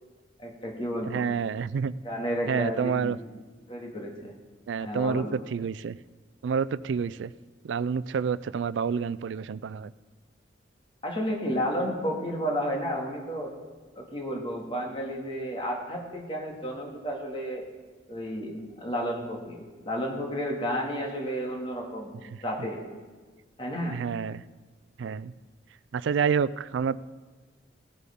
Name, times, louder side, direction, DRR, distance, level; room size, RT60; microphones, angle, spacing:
voice 1, 0.4-1.2 2.0-3.2 3.7-4.3 4.8-5.3 11.0-13.5 14.0-17.6 18.1-22.1 22.4-22.8 23.6-24.0, equal, 30° left, 0 dB, 2.0 m, -32 dB
voice 2, 1.0-1.9 2.5-3.2 4.7-6.0 6.4-7.3 7.6-9.9 22.2-22.4 23.9-24.4 25.0-25.3 25.9-27.0, right 6 dB, 70° right, 18 dB, 0.3 m, -28 dB
17.5 x 11.0 x 3.6 m, 1.4 s
head